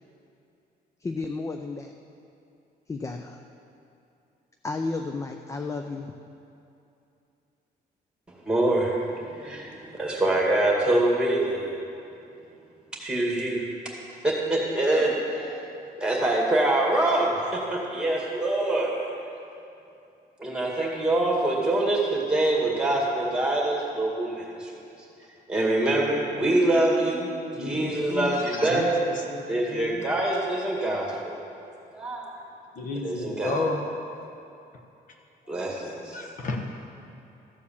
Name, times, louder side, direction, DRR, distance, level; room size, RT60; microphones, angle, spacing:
voice 1, 1.0-1.9 2.9-3.4 4.6-6.1, left 3 dB, 20° left, 5 dB, 0.4 m, -32 dB
voice 2, 8.5-11.8 13.0-13.6 14.2-15.7 16.0-18.9 20.4-24.7 25.5-27.3 27.6-29.1 29.5-31.4 31.9-32.3 32.9-33.6 35.5-36.2, right 1 dB, 5° right, -2 dB, 2.0 m, -25 dB
voice 3, 27.6-28.9 29.3-29.4 29.7-30.0 32.8-33.8 36.1-36.6, left 3 dB, 50° left, 2 dB, 1.0 m, -31 dB
14.0 x 4.8 x 7.1 m, 2.7 s
cardioid pair, 140°, 17 cm